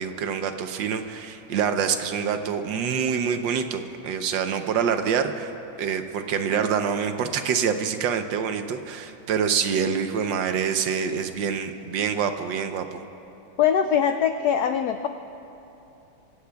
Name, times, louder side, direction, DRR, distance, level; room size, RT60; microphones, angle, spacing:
voice 1, 0.0-5.5 5.8-13.0, right 7 dB, 70° right, 7 dB, 1.4 m, -26 dB
voice 2, 13.6-15.1, left 8 dB, 80° left, 7 dB, 0.8 m, -22 dB
25.5 x 16.5 x 2.3 m, 3.0 s
omnidirectional pair, 2.2 m